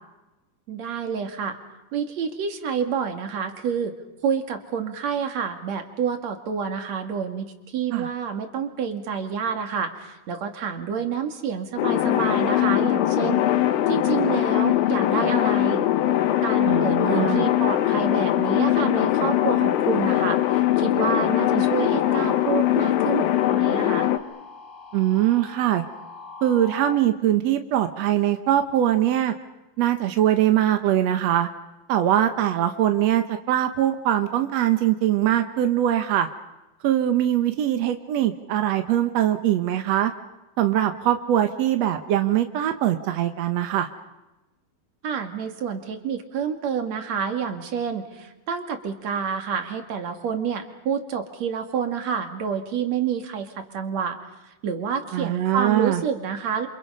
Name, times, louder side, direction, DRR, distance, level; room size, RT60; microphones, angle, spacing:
voice 1, 0.7-1.6 1.9-3.9 4.2-13.4 13.9-15.9 16.4-24.1 45.0-54.2 54.4-56.7, right 7 dB, 50° right, 5 dB, 3.0 m, -28 dB
sound 1, 11.8-24.2, left 13 dB, 75° left, 2.7 m, -21 dB
sound 2, 12.4-27.0, left 4 dB, 50° left, 2.5 m, -42 dB
voice 2, 16.6-17.4 21.6-21.7 24.9-25.8 26.4-29.3 29.8-31.5 31.9-36.3 36.8-40.1 40.6-43.9 55.1-56.0, right 11 dB, 70° right, 7 dB, 1.7 m, -22 dB
28.5 x 27.5 x 5.5 m, 1.0 s
omnidirectional pair, 4.4 m